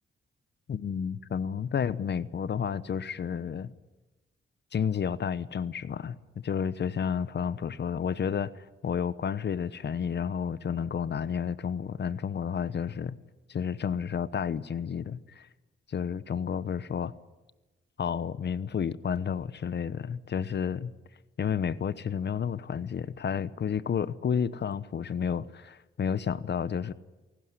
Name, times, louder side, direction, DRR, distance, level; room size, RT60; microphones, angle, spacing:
voice 1, 0.7-3.7 4.7-13.2 13.5-15.5 15.9-17.1 18.0-20.9 21.4-26.9, left 7 dB, 55° left, 1.0 m, -31 dB
27.0 x 18.5 x 9.8 m
cardioid pair, 85°, 21 cm